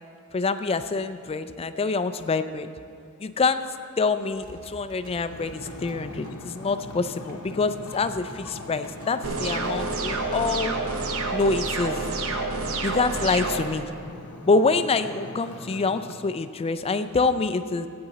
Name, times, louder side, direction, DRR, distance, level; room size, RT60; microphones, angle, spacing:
voice 1, 0.3-2.7 3.2-3.6 4.0-10.8 11.3-12.0 12.8-13.9 14.5-17.9, left 4 dB, 25° left, 11 dB, 0.4 m, -26 dB
sound 1, 4.1-10.9, equal, 40° right, 1.6 m, -49 dB
Ocean, 5.3-16.1, left 2 dB, 80° left, 0.8 m, -41 dB
sound 2, 9.2-13.6, right 3 dB, 70° right, 0.9 m, -28 dB
14.5 x 8.7 x 4.0 m, 2.5 s
head